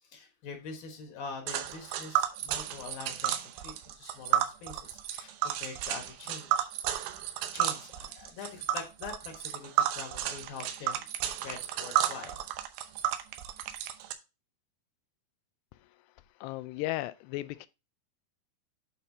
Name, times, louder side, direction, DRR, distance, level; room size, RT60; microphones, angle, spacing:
voice 1, 0.1-6.7 7.5-12.4, left 5 dB, 65° left, 3.0 m, -44 dB
Tick, 1.5-14.1, right 11 dB, 80° right, 3.0 m, -32 dB
voice 2, 16.4-17.7, left 16 dB, 85° left, 2.6 m, -35 dB
8.9 x 5.6 x 2.7 m
omnidirectional pair, 4.9 m